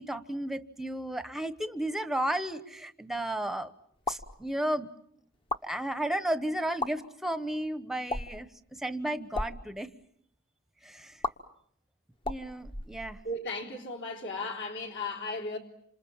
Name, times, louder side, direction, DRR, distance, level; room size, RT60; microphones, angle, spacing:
voice 1, 0.0-3.7 4.1-4.9 5.6-9.9 10.8-11.1 12.3-13.2, right 1 dB, ahead, 1.0 m, -33 dB
sound 1, 4.0-4.3 5.3-5.6 6.7-6.9 8.1-8.4 9.2-9.5 11.2-11.3 12.2-13.4, left 2 dB, 25° left, 1.1 m, -34 dB
voice 2, 13.2-15.6, left 2 dB, 55° left, 4.0 m, -35 dB
28.0 x 27.0 x 7.2 m
head